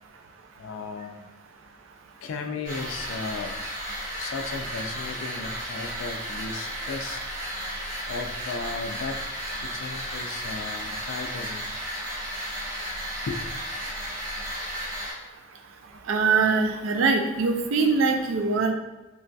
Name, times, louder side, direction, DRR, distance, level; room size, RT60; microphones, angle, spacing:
voice 1, 0.6-1.3 2.2-3.5 4.2-7.2 8.1-9.2 9.6-11.7 13.3-13.4, left 4 dB, 80° left, 6 dB, 0.3 m, -35 dB
sound 1, 2.6-15.1, equal, 40° right, 0.9 m, -34 dB
voice 2, 16.1-18.7, right 4 dB, 75° right, 5 dB, 0.4 m, -22 dB
3.1 x 2.6 x 2.2 m, 1.2 s
head